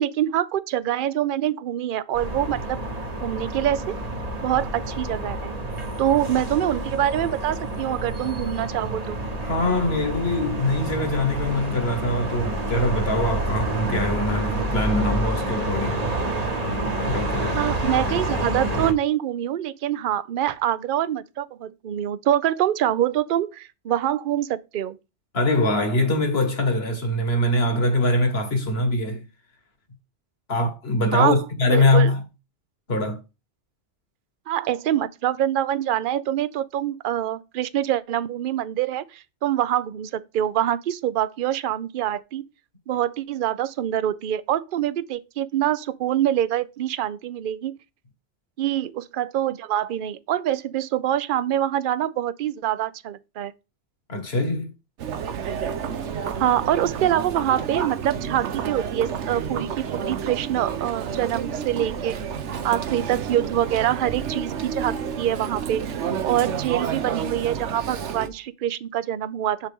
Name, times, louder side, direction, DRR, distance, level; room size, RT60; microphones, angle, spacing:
voice 1, 0.0-2.8 3.2-4.0 4.4-5.5 6.0-9.2 17.5-25.0 31.1-31.4 31.7-32.1 34.5-42.4 42.9-47.8 48.6-53.5 56.4-62.2 62.6-69.7, right 11 dB, 55° right, 0.7 m, -25 dB
sound 1, 2.1-18.9, right 1 dB, 35° right, 1.2 m, -28 dB
voice 2, 9.4-16.0 17.1-17.6 25.3-29.2 30.5-32.2 32.9-33.2 54.1-54.7, left 1 dB, 60° left, 2.0 m, -23 dB
Chatter, 55.0-68.3, right 7 dB, 85° right, 1.1 m, -30 dB
7.4 x 6.3 x 3.6 m
omnidirectional pair, 1.2 m